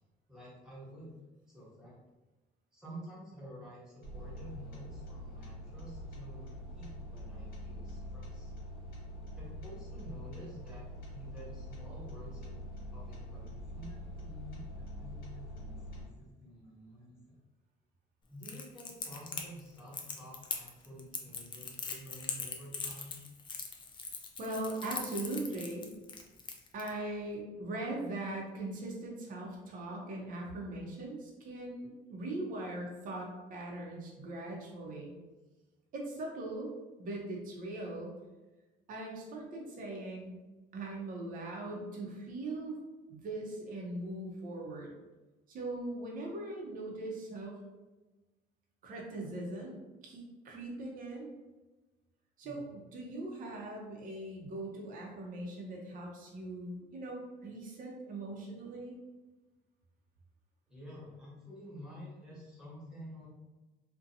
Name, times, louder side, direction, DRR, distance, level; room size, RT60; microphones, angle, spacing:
voice 1, 0.3-1.1 1.5-2.0 2.7-8.5 9.3-10.8 11.1-12.6 12.9-17.4 18.3-23.1 52.4-52.8 60.7-63.3, equal, 5° right, -8 dB, 1.2 m, -50 dB
sound 1, 4.0-16.0, equal, 60° left, 1.2 m, -44 dB
Crackle, 18.4-26.9, left 5 dB, 30° left, 0.4 m, -41 dB
voice 2, 24.4-25.9 26.7-35.1 35.9-36.7 37.0-38.1 38.9-40.3 40.7-42.8 43.1-44.9 45.5-47.6 48.8-51.3 52.4-59.0, right 2 dB, 55° right, -1 dB, 0.7 m, -40 dB
2.5 x 2.2 x 2.6 m, 1.2 s
cardioid pair, 110°, 17 cm